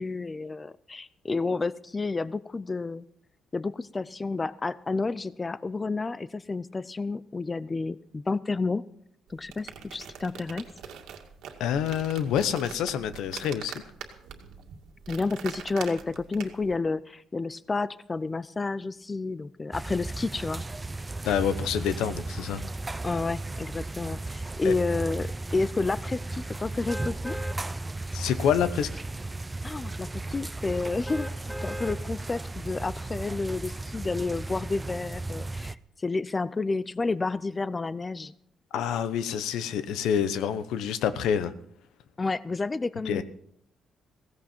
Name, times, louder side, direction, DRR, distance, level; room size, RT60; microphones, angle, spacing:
voice 1, 0.0-3.0 3.5-8.8 9.3-10.7 15.1-20.6 23.0-27.4 29.6-38.3 42.2-43.2, left 3 dB, 25° left, 17 dB, 0.5 m, -30 dB
sound 1, 9.3-16.8, right 8 dB, 85° right, 2.2 m, -43 dB
voice 2, 11.6-13.8 21.2-22.6 24.6-24.7 28.1-28.9 38.7-41.5 43.1-43.2, left 8 dB, 85° left, 12 dB, 1.0 m, -27 dB
sound 2, 19.7-35.7, right 2 dB, 15° right, 0.6 m, -35 dB
sound 3, 26.9-27.6 28.1-28.3 31.1-32.0 32.6-32.7, left 1 dB, ahead, 1.1 m, -38 dB
16.0 x 16.0 x 4.5 m, 0.70 s
cardioid pair, 90°, 0 cm